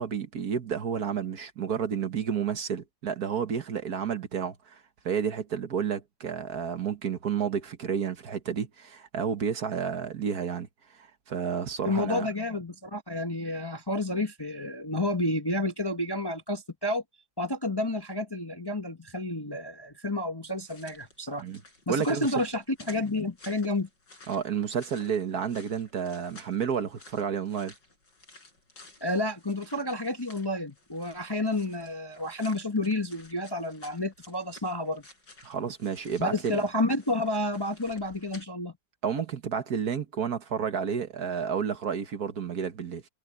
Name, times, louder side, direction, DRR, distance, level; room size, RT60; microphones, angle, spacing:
voice 1, 0.0-10.7 10.9-12.3 21.4-21.6 21.9-22.3 24.3-27.7 35.4-36.6 39.0-43.0, right 7 dB, 60° right, 1.7 m, -31 dB
voice 2, 11.8-17.0 17.4-21.4 21.9-23.9 29.0-35.0 36.2-38.7, left 1 dB, 15° left, 1.0 m, -30 dB
sound 1, 20.6-38.4, left 2 dB, 80° left, 7.7 m, -54 dB
omnidirectional pair, 1.9 m